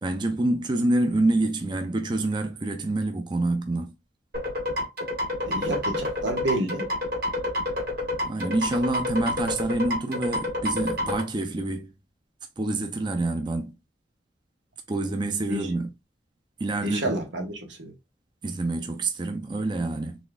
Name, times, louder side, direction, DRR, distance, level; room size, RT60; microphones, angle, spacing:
voice 1, 0.0-3.9 8.3-11.9 12.6-13.7 14.9-15.9 16.6-17.2 18.4-20.2, right 2 dB, 25° right, 0.4 m, -27 dB
sound 1, 4.3-11.2, left 1 dB, 55° right, 1.4 m, -28 dB
voice 2, 5.4-6.9 15.5-15.7 16.8-17.9, right 1 dB, 85° right, 1.2 m, -29 dB
4.1 x 3.4 x 2.3 m
head